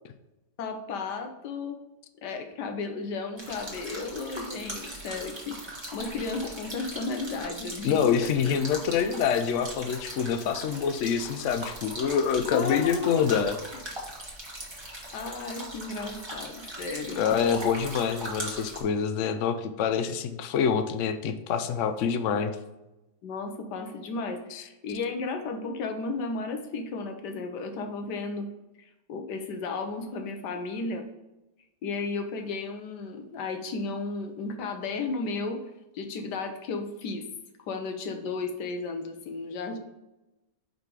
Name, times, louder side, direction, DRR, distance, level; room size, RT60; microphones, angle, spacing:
voice 1, 0.6-1.8 2.2-8.5 12.5-13.3 14.7-14.8 15.1-17.2 23.2-28.5 28.8-31.1 31.8-35.6 35.9-37.3 37.7-39.8, left 3 dB, 85° left, 5 dB, 1.4 m, -34 dB
sound 1, 3.4-18.8, right 1 dB, 20° right, 1.3 m, -40 dB
voice 2, 7.8-13.6 17.1-22.6 24.5-24.6, left 7 dB, 70° left, 8 dB, 0.7 m, -26 dB
5.2 x 4.1 x 4.6 m, 0.98 s
omnidirectional pair, 1.8 m